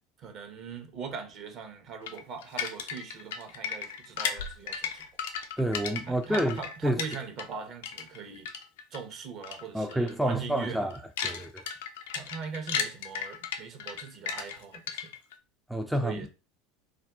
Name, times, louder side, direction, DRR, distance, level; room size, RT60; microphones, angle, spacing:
voice 1, 0.2-5.0 6.1-8.5 8.9-10.9 12.1-15.1 16.0-16.3, right 6 dB, 50° right, 0.8 m, -40 dB
sound 1, 2.1-7.6 7.8-9.0 9.4-9.6 9.9-10.1 10.5-15.3, left 7 dB, 70° left, 0.4 m, -35 dB
voice 2, 5.6-7.0 9.7-11.7 15.7-16.2, right 1 dB, ahead, 0.4 m, -29 dB
2.5 x 2.3 x 3.4 m
hypercardioid pair, 80°, 0 cm